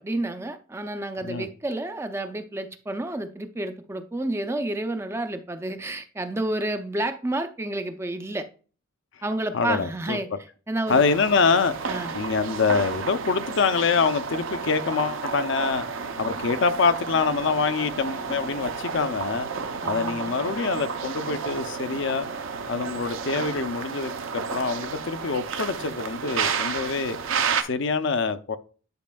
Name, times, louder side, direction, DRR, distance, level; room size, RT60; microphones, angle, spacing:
voice 1, 0.0-8.5 9.2-10.3 10.7-11.0 11.9-12.1 19.8-20.4, right 1 dB, 10° right, 0.4 m, -30 dB
voice 2, 9.5-10.2 10.9-11.7 12.1-15.9 16.2-19.5 19.8-22.3 22.7-27.2 27.7-28.6, left 5 dB, 60° left, 0.5 m, -25 dB
sound 1, 10.9-27.6, right 5 dB, 70° right, 0.6 m, -31 dB
10.5 x 5.1 x 2.3 m
head